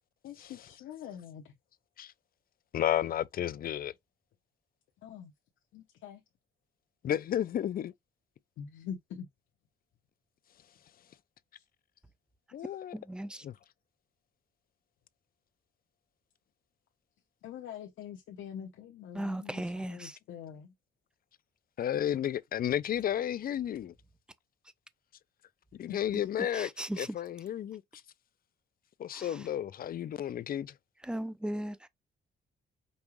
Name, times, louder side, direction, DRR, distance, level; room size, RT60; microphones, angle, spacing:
voice 1, 0.2-1.5 5.0-5.3 5.7-6.2 8.6-9.3 11.6-11.7 12.6-12.8 17.4-20.7 22.0-22.2 25.9-26.0, left 8 dB, 75° left, 0.9 m, -44 dB
voice 2, 2.7-3.9 7.0-7.9 12.5-12.9 13.4-13.5 21.8-23.9 25.7-26.7 27.0-27.8 29.0-30.7, left 10 dB, 50° left, 0.4 m, -32 dB
voice 3, 12.9-13.5 19.1-20.2 26.5-27.1 29.1-29.4 31.0-31.9, right 1 dB, 5° right, 0.5 m, -37 dB
5.3 x 2.3 x 3.1 m
cardioid pair, 90°, 20 cm